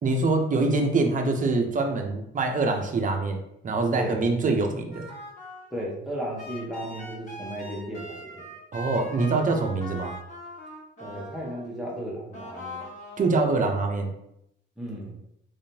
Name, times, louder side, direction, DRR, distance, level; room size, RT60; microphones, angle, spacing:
voice 1, 0.0-3.4 3.6-5.1 8.7-10.1 13.2-14.1, right 3 dB, 40° right, 3 dB, 0.7 m, -24 dB
sound 1, 4.9-5.8 6.4-11.7 12.3-13.3, left 1 dB, 35° left, 1.4 m, -41 dB
voice 2, 5.7-8.5 11.0-12.9 14.8-15.2, equal, ahead, -4 dB, 1.0 m, -35 dB
3.6 x 3.3 x 2.8 m, 0.79 s
cardioid pair, 90°, 20 cm